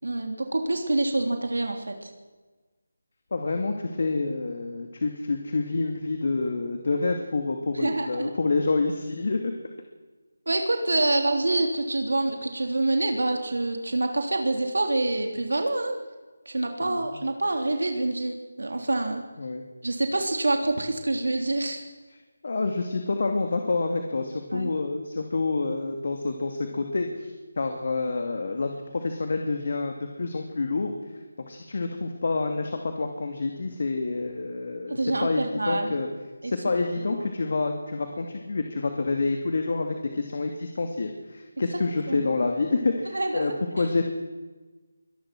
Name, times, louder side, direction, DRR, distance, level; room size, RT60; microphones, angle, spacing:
voice 1, 0.0-2.1 7.7-8.3 10.5-15.9 16.4-19.2 19.8-21.8 24.5-24.7 34.9-35.9 36.4-36.5 42.1-42.4 43.1-43.5, right 2 dB, 85° right, 4 dB, 3.3 m, -26 dB
voice 2, 3.3-9.5 16.8-17.2 19.4-19.6 22.4-30.9 31.5-36.1 36.4-44.0, left 3 dB, 50° left, 5 dB, 2.5 m, -28 dB
24.5 x 19.0 x 6.2 m, 1.3 s
figure-of-eight pair, 170°, 0 cm